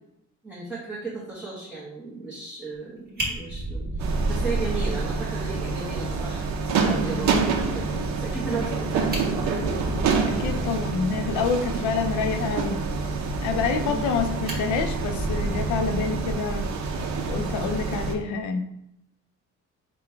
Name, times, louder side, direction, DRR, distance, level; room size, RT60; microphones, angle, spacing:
voice 1, 0.4-7.9 8.2-9.7 13.7-14.1 17.8-18.2, right 3 dB, 5° right, -8 dB, 0.8 m, -35 dB
Fire, 2.7-2.8 3.2-5.1 5.4-5.5 5.9-6.0 6.4-6.5 8.6-8.7 9.0-10.7 13.6-14.1 14.4-16.6 17.9-18.2, right 1 dB, 30° right, 1.1 m, -33 dB
sound 1, 4.0-18.1, right 4 dB, 65° right, 0.6 m, -27 dB
voice 2, 10.3-12.8 13.4-16.7 17.3-18.6, left 5 dB, 75° left, 7 dB, 0.5 m, -27 dB
3.9 x 2.2 x 4.5 m, 0.83 s
cardioid pair, 150°, 29 cm